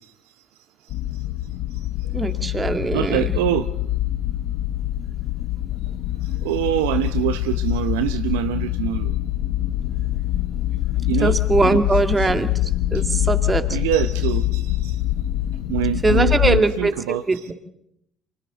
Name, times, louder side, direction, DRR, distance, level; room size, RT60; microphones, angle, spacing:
sound 1, 0.9-16.6, left 14 dB, 65° left, 0.8 m, -24 dB
voice 1, 2.1-3.4 11.2-12.5 12.9-13.6 16.0-16.9 17.3-17.5, right 3 dB, 25° right, 8 dB, 2.1 m, -21 dB
voice 2, 2.9-3.7 6.4-9.1 11.1-11.4 13.7-15.0 15.7-17.2, right 12 dB, 80° right, 11 dB, 0.7 m, -24 dB
30.0 x 25.5 x 4.0 m, 0.74 s
hypercardioid pair, 55°, 0 cm